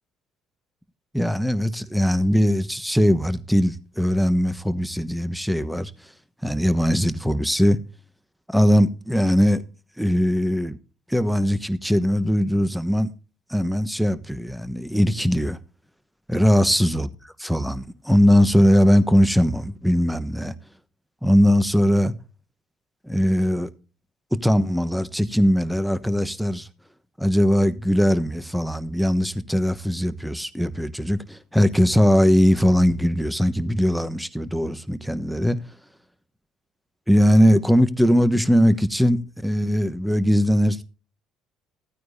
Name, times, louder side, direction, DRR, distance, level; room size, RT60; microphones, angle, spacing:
voice 1, 1.1-5.9 6.4-7.8 8.5-9.6 10.0-10.8 11.1-13.1 13.5-15.6 16.3-20.5 21.2-22.1 23.0-23.7 24.3-26.7 27.2-35.6 37.1-40.8, equal, ahead, 1.0 m, -20 dB
14.5 x 9.3 x 2.7 m
hypercardioid pair, 65°, 0 cm